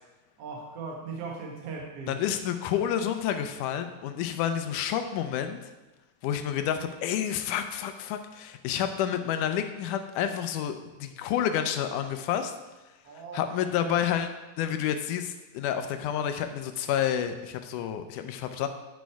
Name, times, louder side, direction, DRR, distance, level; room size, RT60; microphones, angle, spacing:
voice 1, 0.4-2.3 13.0-14.0, right 4 dB, 55° right, 0 dB, 2.1 m, -39 dB
voice 2, 2.1-5.7 6.2-12.5 13.3-14.3 14.6-18.7, left 9 dB, 85° left, 8 dB, 2.2 m, -29 dB
10.5 x 6.3 x 4.7 m, 1.1 s
omnidirectional pair, 3.6 m